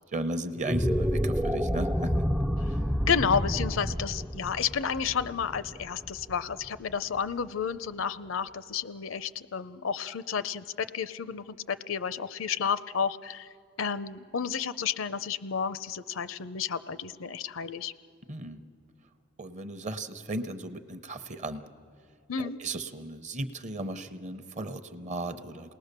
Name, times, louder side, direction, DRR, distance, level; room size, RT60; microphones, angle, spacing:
voice 1, 0.1-2.2 2.7-2.8 18.3-18.6 19.4-21.6 22.4-25.7, right 2 dB, 35° right, 11 dB, 0.8 m, -36 dB
sound 1, 0.5-6.9, equal, 5° right, 0.5 m, -29 dB
voice 2, 3.1-13.5 13.8-17.9 22.3-22.6, left 6 dB, 75° left, 15 dB, 0.6 m, -31 dB
28.5 x 19.5 x 6.7 m, 2.3 s
head